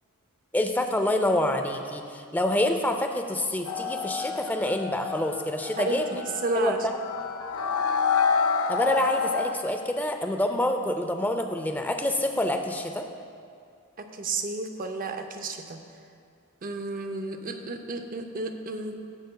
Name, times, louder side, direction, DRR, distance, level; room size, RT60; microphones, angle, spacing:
voice 1, 0.5-6.2 6.5-6.7 8.7-13.1, left 1 dB, 10° left, 5 dB, 0.4 m, -27 dB
sound 1, 3.7-9.5, left 5 dB, 65° left, 0.5 m, -28 dB
voice 2, 5.8-6.8 14.1-15.8 16.6-19.0, right 3 dB, 40° right, 6 dB, 0.6 m, -32 dB
13.0 x 7.6 x 2.2 m, 2.3 s
head